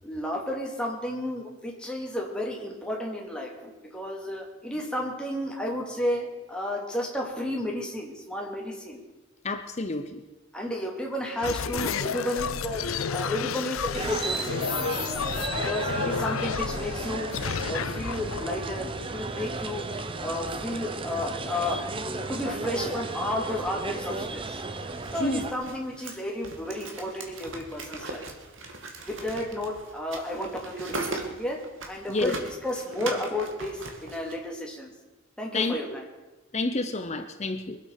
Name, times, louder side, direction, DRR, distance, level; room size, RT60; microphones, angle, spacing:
voice 1, 0.0-9.0 10.5-14.9 15.5-17.3 17.7-19.8 20.2-21.8 22.3-24.6 25.1-28.3 29.1-31.6 31.9-34.9 35.4-36.1, left 1 dB, 5° left, 2.8 m, -32 dB
voice 2, 9.4-10.2 25.2-25.4 32.1-32.3 35.5-35.8 36.5-37.8, left 2 dB, 35° left, 0.8 m, -29 dB
sound 1, 11.4-19.6, left 6 dB, 90° left, 0.6 m, -31 dB
sound 2, 13.9-25.5, right 3 dB, 25° right, 0.9 m, -34 dB
sound 3, 25.0-34.4, right 3 dB, 70° right, 2.2 m, -39 dB
23.0 x 8.4 x 6.7 m
head